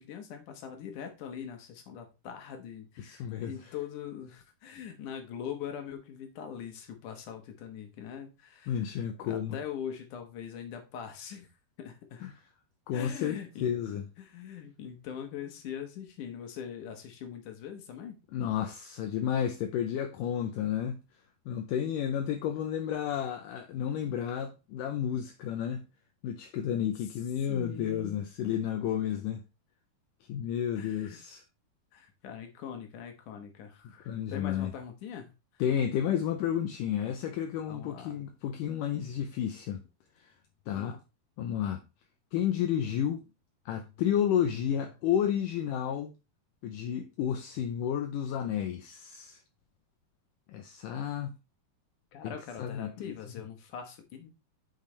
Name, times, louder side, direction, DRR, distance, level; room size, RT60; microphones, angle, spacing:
voice 1, 0.0-8.9 9.2-11.5 11.8-12.2 12.9-13.7 14.2-18.2 27.5-28.2 28.5-28.6 30.7-31.2 31.9-35.3 37.7-38.2 40.7-41.0 52.1-54.3, left 8 dB, 65° left, 2.5 m, -42 dB
voice 2, 3.0-3.5 8.7-9.6 12.2-12.3 12.9-14.0 18.3-21.0 21.5-25.9 26.2-29.4 30.3-31.4 34.1-34.7 35.6-39.8 40.7-40.9 41.4-41.8 42.3-43.2 43.7-46.1 46.6-49.4 50.5-51.4 52.2-53.1, left 9 dB, 80° left, 2.0 m, -31 dB
8.7 x 5.7 x 3.2 m
omnidirectional pair, 4.5 m